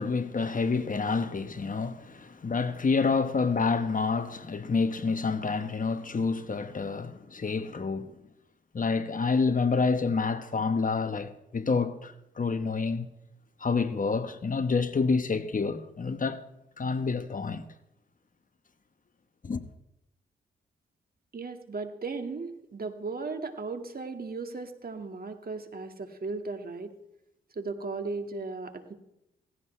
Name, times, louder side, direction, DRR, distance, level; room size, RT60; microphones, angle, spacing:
voice 1, 0.0-8.1 8.7-13.1 13.6-16.4 16.8-17.6 19.4-19.6, left 4 dB, 40° left, 1.2 m, -28 dB
voice 2, 21.3-26.9 27.5-28.9, right 4 dB, 45° right, 1.9 m, -36 dB
17.0 x 15.5 x 3.3 m
supercardioid pair, 50°, 21 cm